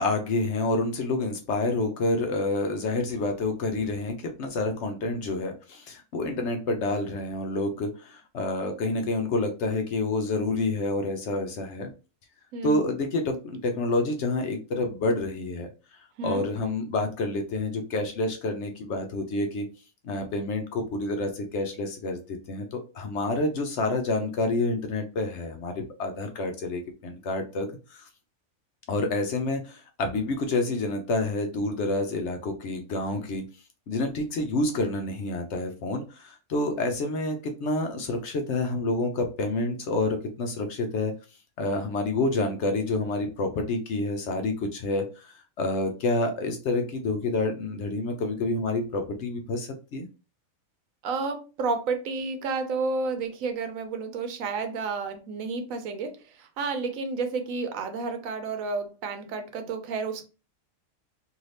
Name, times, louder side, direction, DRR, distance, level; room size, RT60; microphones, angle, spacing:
voice 1, 0.0-11.9 12.6-15.7 16.2-19.7 20.0-28.1 28.9-33.4 33.9-41.1 41.6-50.1, left 2 dB, 65° left, 5 dB, 0.8 m, -28 dB
voice 2, 12.5-12.8 16.2-16.4 51.0-56.1 56.4-60.2, right 4 dB, 75° right, 7 dB, 1.0 m, -31 dB
2.7 x 2.7 x 3.2 m, 0.33 s
omnidirectional pair, 1.5 m